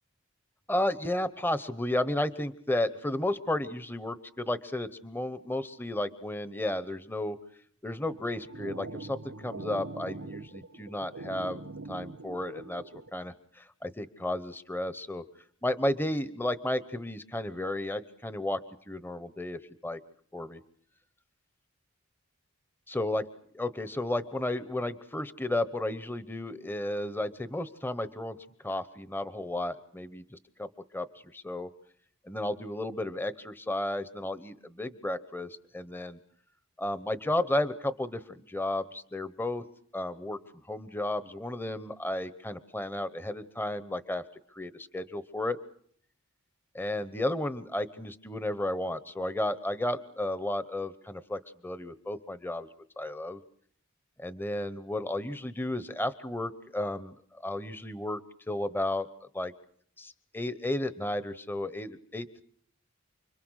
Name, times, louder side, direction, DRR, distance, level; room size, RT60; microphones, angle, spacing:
voice 1, 0.7-7.4 7.8-12.8 13.1-15.2 15.6-18.6 18.9-20.0 20.3-20.6 22.9-23.2 23.5-28.4 28.6-30.7 30.9-31.1 31.3-31.7 32.2-36.2 36.8-39.6 39.9-40.4 40.7-44.2 44.5-45.6 46.7-52.7 53.0-53.4 54.2-58.2 58.5-59.1 59.3-59.5 60.0-62.3, left 1 dB, 10° left, 13 dB, 1.0 m, -33 dB
sound 1, 8.1-13.1, right 2 dB, 85° right, 1.2 m, -43 dB
29.5 x 23.0 x 6.4 m, 0.62 s
head